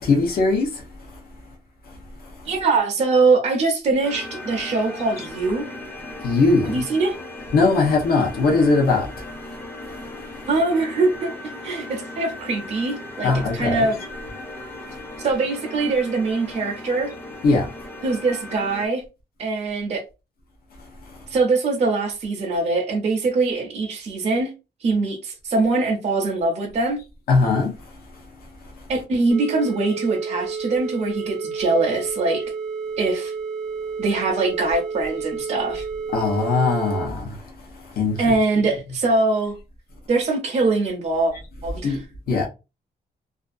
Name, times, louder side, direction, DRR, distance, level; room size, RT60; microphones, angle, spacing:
voice 1, 0.1-0.7 6.2-6.7 7.5-9.1 13.2-13.9 17.4-17.6 27.3-27.7 36.1-37.2 38.0-38.3 41.8-42.0 42.3-42.5, left 3 dB, 60° left, 0.7 m, -19 dB
voice 2, 2.5-5.7 6.6-7.2 10.5-11.3 11.6-14.0 15.2-17.1 18.0-19.0 19.4-20.0 21.3-24.5 24.8-27.0 28.9-32.4 33.0-33.3 34.0-35.8 38.2-39.6 40.1-41.3 41.6-42.0, right 3 dB, 40° right, 0.5 m, -22 dB
sound 1, 4.0-18.9, left 2 dB, 10° left, 0.5 m, -37 dB
sound 2, 29.3-37.1, right 5 dB, 80° right, 0.7 m, -30 dB
2.5 x 2.3 x 2.4 m
wide cardioid pair, 175°, 17 cm